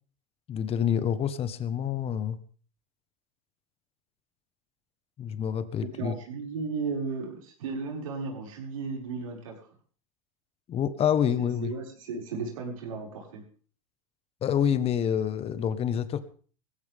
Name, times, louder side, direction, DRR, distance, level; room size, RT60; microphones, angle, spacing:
voice 1, 0.5-2.4 5.2-6.1 10.7-11.7 14.4-16.2, left 8 dB, 35° left, 12 dB, 1.5 m, -27 dB
voice 2, 5.9-9.7 11.4-13.4, right 4 dB, 80° right, -1 dB, 6.5 m, -35 dB
19.5 x 15.5 x 3.8 m, 0.41 s
hypercardioid pair, 100°, 17 cm